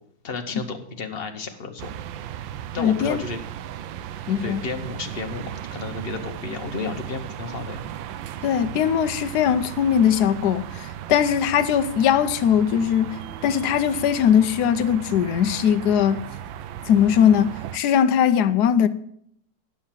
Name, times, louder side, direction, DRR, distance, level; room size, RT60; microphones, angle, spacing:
voice 1, 0.2-1.9 2.7-3.4 4.4-7.9, left 4 dB, 40° left, 1.1 m, -32 dB
sound 1, 1.8-17.8, right 10 dB, 85° right, 1.4 m, -36 dB
voice 2, 2.8-3.2 4.3-4.6 8.4-13.1 13.4-16.2 16.9-18.9, left 8 dB, 70° left, 1.1 m, -20 dB
10.5 x 6.4 x 7.4 m
omnidirectional pair, 2.0 m